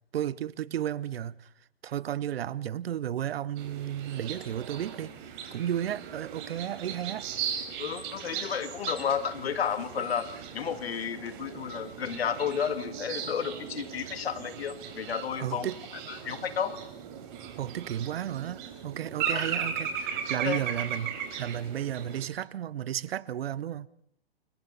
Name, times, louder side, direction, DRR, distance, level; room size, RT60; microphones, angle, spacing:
voice 1, 0.1-1.5 1.8-7.3 15.4-15.8 17.6-23.9, right 10 dB, 70° right, 1.0 m, -33 dB
sound 1, 3.6-22.3, right 8 dB, 50° right, 4.5 m, -38 dB
voice 2, 7.8-15.7 16.1-16.8 19.3-19.4 20.4-20.6, left 7 dB, 75° left, 2.1 m, -32 dB
29.0 x 22.5 x 4.1 m
hypercardioid pair, 120°, 31 cm